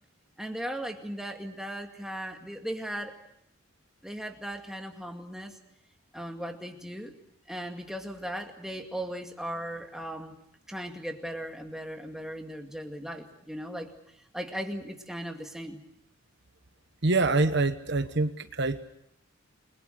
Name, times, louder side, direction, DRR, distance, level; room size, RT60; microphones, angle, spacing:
voice 1, 0.4-3.1 4.0-5.6 6.1-7.1 7.5-10.3 10.7-13.9 14.3-15.8, equal, ahead, 3 dB, 2.2 m, -37 dB
voice 2, 17.0-18.8, right 3 dB, 55° right, 9 dB, 1.2 m, -25 dB
29.5 x 22.5 x 6.5 m, 0.74 s
head